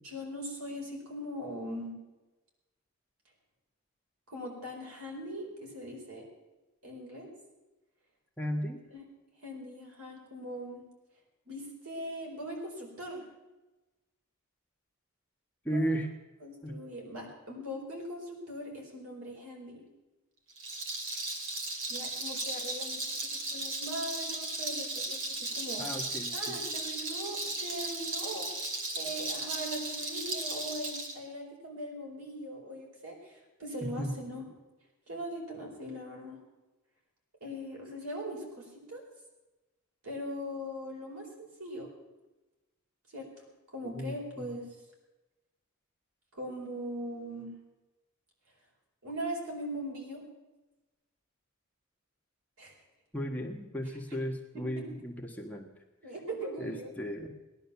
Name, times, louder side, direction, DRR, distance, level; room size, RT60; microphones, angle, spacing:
voice 1, 0.0-1.9 4.3-6.3 6.8-7.3 8.9-9.0 9.4-10.8 11.5-13.2 15.7-15.9 16.4-19.8 21.9-25.9 26.3-28.5 28.9-34.4 35.1-36.4 37.4-39.0 40.0-41.9 43.1-43.3 43.7-44.7 46.3-47.5 49.0-50.2 52.6-52.7 54.1-54.2 54.8-54.9 56.0-56.9, equal, 90° right, 0 dB, 4.7 m, -40 dB
voice 2, 8.4-8.8 15.6-16.1 16.6-16.7 25.8-26.6 33.8-34.1 43.8-44.5 53.1-55.7 56.6-57.3, equal, 5° left, 0 dB, 1.4 m, -35 dB
Rattle, 20.5-31.1, right 2 dB, 60° right, 2.4 m, -36 dB
18.0 x 11.0 x 7.1 m, 1.1 s
head